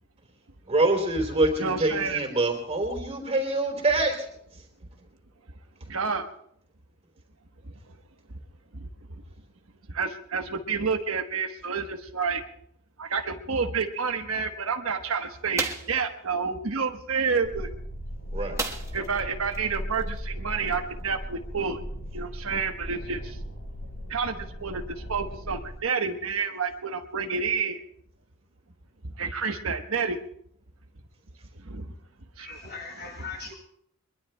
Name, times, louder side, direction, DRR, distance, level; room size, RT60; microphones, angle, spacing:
voice 1, 0.7-4.2 18.3-18.6, right 2 dB, 30° right, 3 dB, 3.3 m, -25 dB
voice 2, 1.6-2.2 5.9-6.3 8.8-8.9 9.9-12.4 13.0-17.7 18.9-21.8 22.1-23.4 24.1-24.8 25.1-27.8 29.2-30.2 31.6-31.9 32.4-32.5, right 5 dB, 70° right, 5 dB, 1.2 m, -29 dB
sound 1, 15.6-16.0 18.6-19.1 19.5-19.6 20.0-20.2, right 3 dB, 15° right, 1.2 m, -31 dB
sound 2, 17.4-25.8, equal, 85° left, 5.5 m, -37 dB
voice 3, 32.4-33.5, left 5 dB, 50° left, 0 dB, 7.1 m, -39 dB
23.5 x 22.5 x 2.2 m, 0.69 s
head